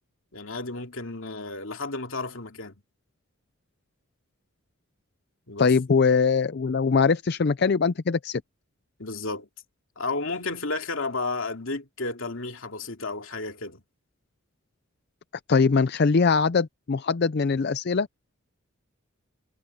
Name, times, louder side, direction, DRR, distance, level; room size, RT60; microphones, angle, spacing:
voice 1, 0.3-2.7 5.5-5.7 9.0-9.5 10.0-13.8, left 3 dB, 70° left, 2.6 m, -32 dB
voice 2, 5.6-8.4 15.5-18.1, left 5 dB, 50° left, 0.5 m, -22 dB
head